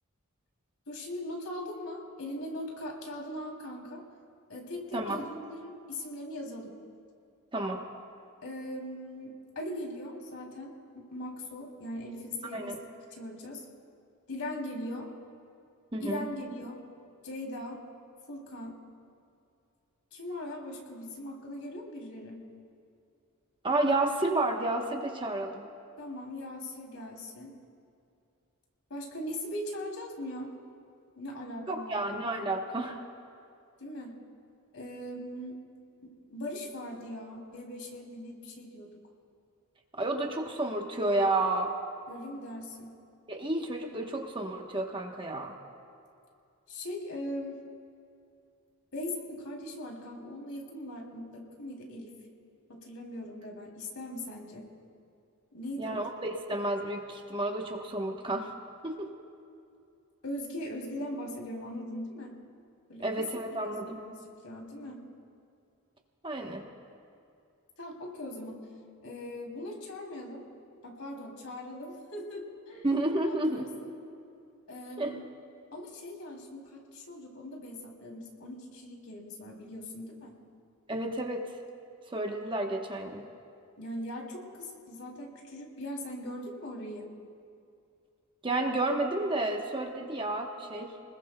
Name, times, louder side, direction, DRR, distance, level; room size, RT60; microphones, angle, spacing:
voice 1, 0.9-4.0 4.5-6.7 8.4-12.8 13.1-13.6 14.3-15.1 16.0-16.8 17.2-17.8 18.3-18.8 20.1-22.4 26.0-27.5 28.9-30.5 31.1-32.5 33.8-34.2 34.7-35.5 36.0-38.9 42.1-42.9 46.7-47.6 48.9-52.1 52.7-54.7 55.5-56.0 60.2-62.4 62.9-63.1 63.7-64.1 64.4-65.0 67.8-68.6 69.0-70.4 70.8-72.9 73.2-73.7 74.7-75.2 75.7-80.4 83.8-87.1, left 1 dB, 70° left, 0 dB, 3.0 m, -40 dB
voice 2, 15.9-16.3 23.6-25.7 31.7-33.0 39.9-41.7 43.3-45.5 55.8-58.5 58.8-59.1 63.0-64.0 66.2-66.7 72.8-73.7 75.0-75.3 80.9-81.4 82.1-83.3 88.4-90.9, right 2 dB, 20° right, 2 dB, 1.0 m, -31 dB
29.5 x 20.5 x 2.2 m, 2.5 s
head